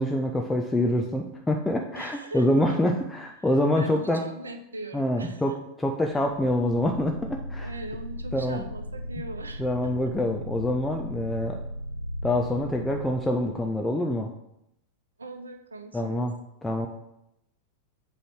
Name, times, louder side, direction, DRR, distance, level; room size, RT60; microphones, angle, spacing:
voice 1, 0.0-4.2 4.9-5.5 5.8-7.7 8.3-8.6 9.6-11.6 12.2-14.3 15.9-16.4 16.6-16.9, left 1 dB, 10° left, 2 dB, 0.5 m, -26 dB
voice 2, 1.9-2.8 3.4-5.6 7.6-10.1 15.2-16.3, right 2 dB, 75° right, 7 dB, 0.8 m, -41 dB
sound 1, 6.2-13.8, equal, 65° left, 0.5 m, -37 dB
7.6 x 3.2 x 6.1 m, 0.82 s
figure-of-eight pair, 90°, 0 cm